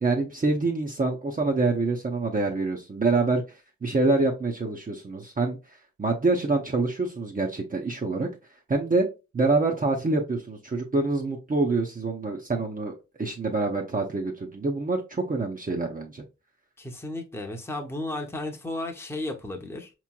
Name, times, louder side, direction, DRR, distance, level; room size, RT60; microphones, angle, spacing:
voice 1, 0.0-3.4 3.8-5.6 6.0-8.3 8.7-9.1 9.3-12.9 13.2-16.2, right 3 dB, 30° right, 0.7 m, -26 dB
voice 2, 16.8-19.9, left 2 dB, 10° left, 0.8 m, -34 dB
4.8 x 3.0 x 2.2 m
cardioid pair, 70°, 29 cm